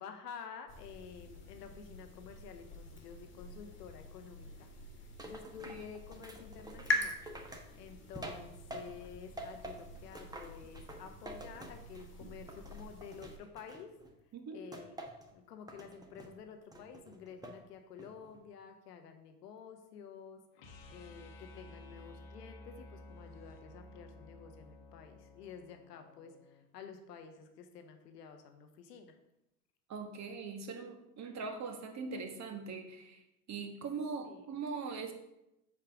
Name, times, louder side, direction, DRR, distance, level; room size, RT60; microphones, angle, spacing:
voice 1, 0.0-4.7 5.0-7.2 7.7-13.9 14.5-14.9 15.3-20.4 20.9-29.1 34.2-34.4, left 6 dB, 80° left, 6 dB, 1.2 m, -50 dB
sound 1, 0.7-13.4, left 2 dB, 25° left, 1.7 m, -44 dB
sound 2, 5.2-9.1 9.4-12.2 12.5-14.1 14.7-15.3 15.7-16.3 16.7-17.6 18.0-18.4, right 1 dB, 10° right, 1.1 m, -48 dB
voice 2, 14.3-14.6 29.9-33.2 33.5-35.1, right 4 dB, 35° right, 4 dB, 1.4 m, -41 dB
sound 3, 20.5-26.6, left 2 dB, 55° left, 1.3 m, -54 dB
7.2 x 4.5 x 5.0 m, 0.88 s
hypercardioid pair, 80°, 48 cm